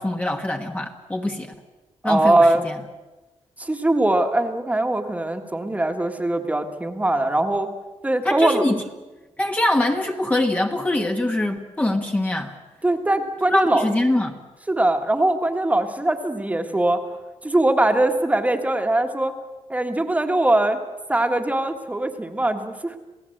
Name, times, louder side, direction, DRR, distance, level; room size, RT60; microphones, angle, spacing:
voice 1, 0.0-1.5 2.0-2.8 8.2-8.8 9.4-12.5 13.5-14.4, left 1 dB, 15° left, 2 dB, 1.3 m, -23 dB
voice 2, 2.0-2.7 3.6-7.7 8.0-8.6 12.8-13.9 14.7-17.0 17.4-19.3 19.7-20.8 21.1-23.0, right 1 dB, 10° right, 5 dB, 1.6 m, -21 dB
28.0 x 17.0 x 7.9 m, 1.2 s
wide cardioid pair, 145°, 12 cm